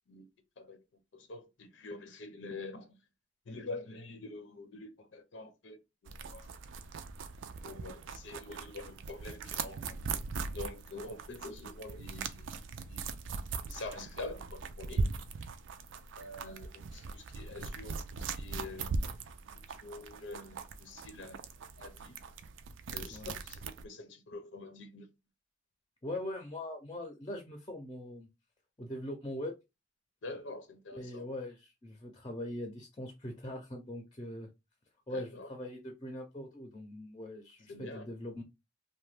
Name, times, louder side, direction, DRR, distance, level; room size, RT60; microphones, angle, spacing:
voice 1, 1.1-2.9 3.5-5.8 6.0-6.5 7.6-9.8 10.5-12.5 12.9-13.0 13.7-15.1 16.2-19.0 19.8-21.5 21.8-22.2 22.9-25.1 30.2-31.3 35.1-35.5 37.7-38.1, left 2 dB, 85° left, 0.6 m, -46 dB
sound 1, 6.1-23.8, right 4 dB, 85° right, 0.4 m, -40 dB
voice 2, 26.0-28.3 28.8-29.6 30.9-34.5 35.1-38.4, left 1 dB, 25° left, 0.5 m, -41 dB
2.9 x 2.1 x 3.1 m
head